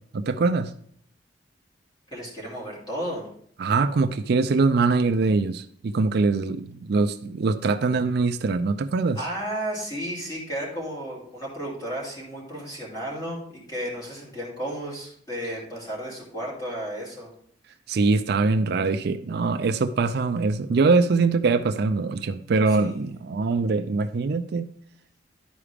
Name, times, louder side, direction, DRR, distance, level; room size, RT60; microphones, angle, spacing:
voice 1, 0.1-0.7 3.6-9.2 17.9-24.7, right 4 dB, 60° right, 10 dB, 0.4 m, -23 dB
voice 2, 2.1-3.3 9.1-17.3 22.7-23.0, equal, 20° left, -4 dB, 2.7 m, -33 dB
11.0 x 4.8 x 3.4 m, 0.63 s
head